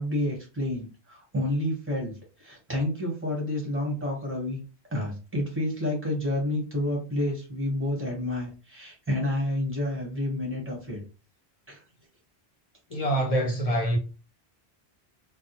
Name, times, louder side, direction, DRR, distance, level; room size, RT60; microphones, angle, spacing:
voice 1, 0.0-4.6 4.9-11.0 11.7-11.8, left 1 dB, 15° right, 1.0 m, -29 dB
voice 2, 12.9-14.0, right 1 dB, 40° left, 0.7 m, -25 dB
2.3 x 2.1 x 2.8 m
omnidirectional pair, 1.1 m